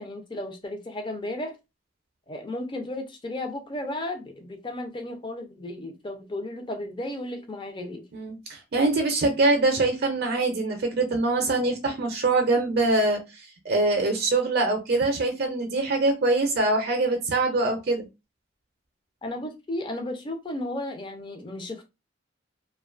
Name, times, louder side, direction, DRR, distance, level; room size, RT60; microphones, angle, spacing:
voice 1, 0.0-1.6 2.3-8.1 19.2-21.9, left 1 dB, 25° left, 0.5 m, -34 dB
voice 2, 8.1-13.2 13.7-18.1, right 2 dB, 55° right, 0.5 m, -23 dB
2.5 x 2.2 x 2.4 m
head